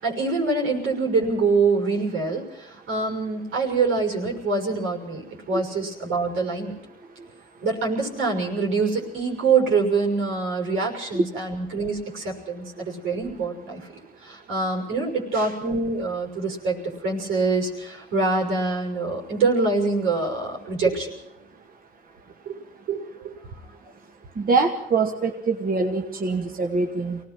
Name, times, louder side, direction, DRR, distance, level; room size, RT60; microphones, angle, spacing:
voice 1, 0.0-6.8 7.6-13.8 14.2-16.8 17.0-21.1 22.5-22.6 22.9-23.3, right 4 dB, 85° right, 2 dB, 6.0 m, -25 dB
voice 2, 24.4-27.2, right 4 dB, 45° right, 2 dB, 2.1 m, -24 dB
24.5 x 18.5 x 6.1 m, 0.85 s
cardioid pair, 90°, 20 cm